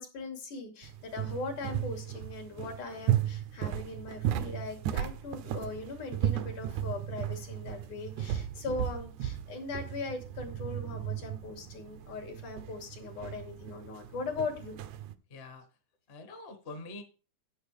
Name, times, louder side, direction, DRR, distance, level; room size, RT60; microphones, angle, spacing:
voice 1, 0.0-14.8, left 3 dB, 70° left, 3 dB, 3.9 m, -40 dB
sound 1, 0.8-15.1, right 11 dB, 80° right, 2.0 m, -35 dB
voice 2, 15.3-15.6 16.1-17.0, left 2 dB, 30° left, 6 dB, 1.1 m, -45 dB
11.0 x 9.4 x 3.4 m, 0.35 s
omnidirectional pair, 3.6 m